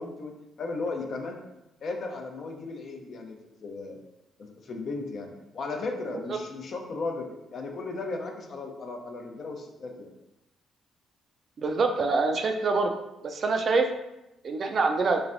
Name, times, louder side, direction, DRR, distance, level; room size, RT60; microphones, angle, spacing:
voice 1, 0.0-1.4 1.8-4.0 4.4-10.1, left 3 dB, 55° left, 3 dB, 0.6 m, -36 dB
voice 2, 11.6-12.9 13.2-13.9 14.4-15.2, right 3 dB, 50° right, 4 dB, 0.4 m, -25 dB
3.2 x 3.2 x 2.5 m, 0.92 s
cardioid pair, 90°, 0 cm